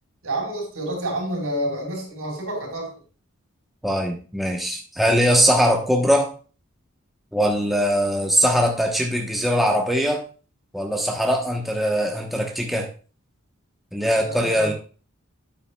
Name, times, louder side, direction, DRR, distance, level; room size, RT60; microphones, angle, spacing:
voice 1, 0.2-2.9 14.1-14.7, right 1 dB, 75° right, 0 dB, 4.7 m, -29 dB
voice 2, 3.8-6.3 7.3-10.2 10.7-12.9 13.9-14.7, equal, ahead, 0 dB, 1.0 m, -21 dB
9.7 x 8.9 x 2.3 m, 0.38 s
head